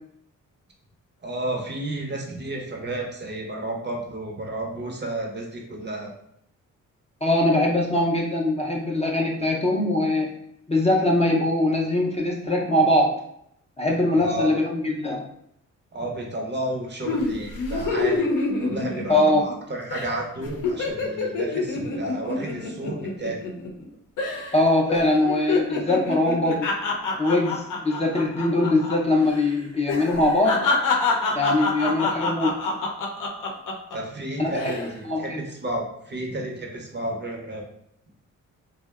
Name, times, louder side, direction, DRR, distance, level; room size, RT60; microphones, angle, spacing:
voice 1, 1.2-6.1 14.2-14.5 15.9-18.3 18.6-23.4 33.9-37.6, right 1 dB, 35° right, 0 dB, 0.6 m, -32 dB
voice 2, 7.2-10.3 10.7-13.1 13.8-15.2 19.1-19.4 24.5-26.7 27.2-30.6 31.3-32.5 34.4-34.7 35.0-35.4, left 1 dB, 20° left, -2 dB, 0.5 m, -22 dB
sound 1, 17.1-19.6 19.9-20.1 20.4-23.9 24.2-24.6 24.9-29.0 29.2-29.4 29.9-34.0 34.4-34.9, left 3 dB, 70° left, 0.6 m, -27 dB
2.6 x 2.1 x 2.3 m, 0.73 s
supercardioid pair, 60°, 33 cm